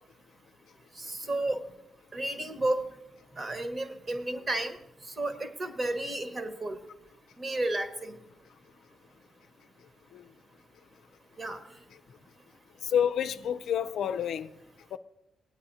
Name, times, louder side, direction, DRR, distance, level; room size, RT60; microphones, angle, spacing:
voice 1, 1.0-1.6 2.1-2.8 3.4-4.8 5.1-6.8 7.4-8.1 11.4-11.6, right 2 dB, 35° right, 1.3 m, -32 dB
voice 2, 12.8-14.5 14.9-15.0, left 8 dB, 75° left, 0.4 m, -29 dB
18.5 x 9.0 x 2.7 m
cardioid pair, 85°, 0 cm